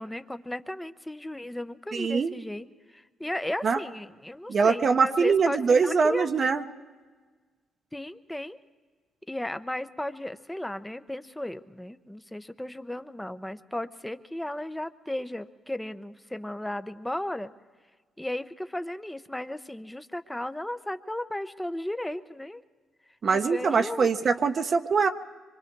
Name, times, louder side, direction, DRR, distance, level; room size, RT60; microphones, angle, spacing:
voice 1, 0.0-2.7 2.9-6.3 7.9-8.6 9.3-17.5 18.2-22.6 23.3-24.1, left 1 dB, 5° left, 11 dB, 0.8 m, -35 dB
voice 2, 1.9-2.3 3.6-3.8 4.5-6.6 23.2-25.1, right 5 dB, 45° right, 7 dB, 0.8 m, -23 dB
25.0 x 24.0 x 4.6 m, 1.4 s
cardioid pair, 90°, 0 cm